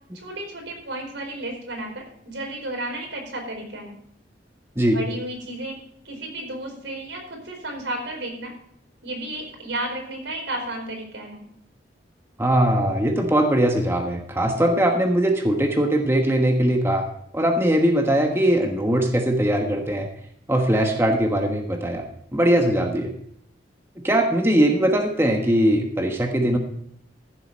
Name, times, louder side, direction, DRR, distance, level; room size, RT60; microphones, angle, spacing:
voice 1, 0.1-4.0 4.9-5.8 6.0-8.5 9.0-11.5, right 1 dB, 85° right, 1 dB, 4.6 m, -33 dB
voice 2, 12.4-17.1 17.3-20.1 20.5-22.0 22.3-23.1 24.0-26.6, right 1 dB, 15° right, 3 dB, 1.3 m, -20 dB
14.5 x 8.0 x 5.3 m, 0.70 s
head